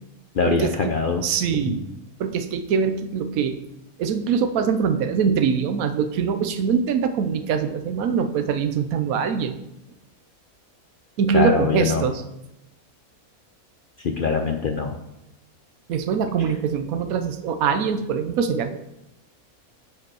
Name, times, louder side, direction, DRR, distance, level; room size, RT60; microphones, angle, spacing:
voice 1, 0.3-1.8 11.3-12.1 14.0-15.0 16.4-16.5, left 4 dB, 65° left, 5 dB, 0.5 m, -24 dB
voice 2, 1.2-1.8 2.2-3.6 4.0-9.6 11.2-12.2 15.9-18.8, right 6 dB, 70° right, 7 dB, 1.2 m, -23 dB
7.9 x 5.0 x 6.2 m, 0.89 s
omnidirectional pair, 1.6 m